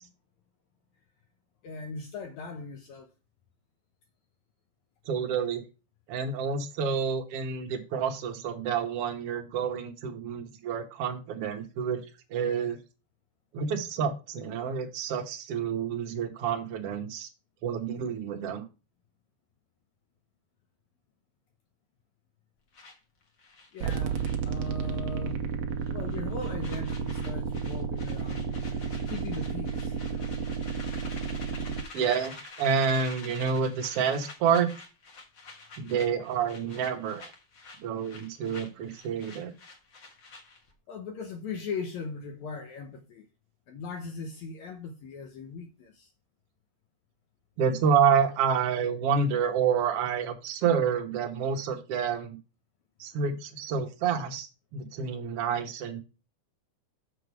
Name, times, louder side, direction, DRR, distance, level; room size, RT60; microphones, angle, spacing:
voice 1, 1.6-3.1 23.7-25.4 25.9-30.3 40.9-43.3 43.7-46.1, left 4 dB, 75° left, 1.7 m, -39 dB
voice 2, 5.1-5.6 6.1-12.0 12.3-12.8 13.5-17.3 17.6-18.6 31.9-34.7 35.8-37.3 37.8-39.5 47.6-52.4 53.0-54.5 54.7-56.0, right 6 dB, 70° right, 1.4 m, -28 dB
sound 1, 22.7-25.0 25.3-25.5 25.8-40.7, left 3 dB, 50° left, 1.6 m, -48 dB
sound 2, 23.8-31.8, right 6 dB, 85° right, 1.4 m, -32 dB
6.8 x 6.1 x 4.7 m
omnidirectional pair, 4.3 m